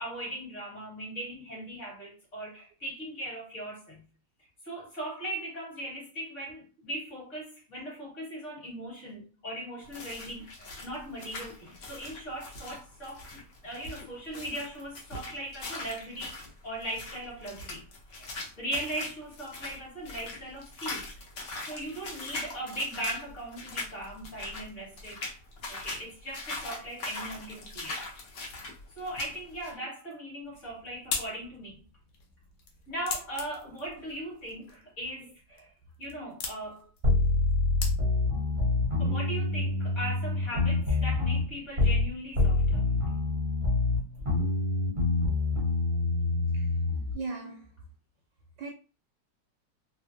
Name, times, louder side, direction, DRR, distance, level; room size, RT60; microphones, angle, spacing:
voice 1, 0.0-4.0 4.6-16.4 16.6-17.8 18.1-21.1 21.6-25.3 25.7-28.0 29.0-31.8 32.9-35.7 36.0-36.9 39.0-42.9, right 1 dB, 40° left, 1.4 m, -39 dB
sound 1, 9.8-29.7, left 2 dB, 60° left, 1.0 m, -41 dB
sound 2, 30.4-38.4, left 5 dB, 75° left, 1.3 m, -41 dB
sound 3, 37.0-42.1 42.4-47.1, left 3 dB, 45° right, 0.6 m, -26 dB
voice 2, 47.1-47.8 48.6-48.7, right 4 dB, 75° right, 1.1 m, -39 dB
3.3 x 2.1 x 2.6 m
omnidirectional pair, 2.3 m